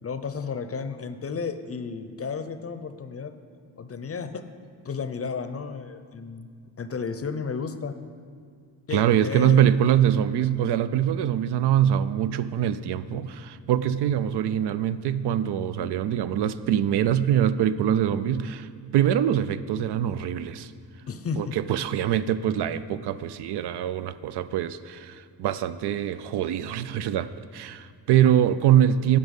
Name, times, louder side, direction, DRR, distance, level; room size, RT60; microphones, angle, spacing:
voice 1, 0.0-3.3 3.8-4.4 4.8-6.5 6.8-7.9 8.9-9.6 21.1-21.5, left 5 dB, 35° left, 10 dB, 0.6 m, -33 dB
voice 2, 8.9-20.7 21.4-29.2, right 10 dB, 65° right, 13 dB, 0.5 m, -24 dB
10.0 x 5.4 x 5.3 m, 2.2 s
supercardioid pair, 65°, 43 cm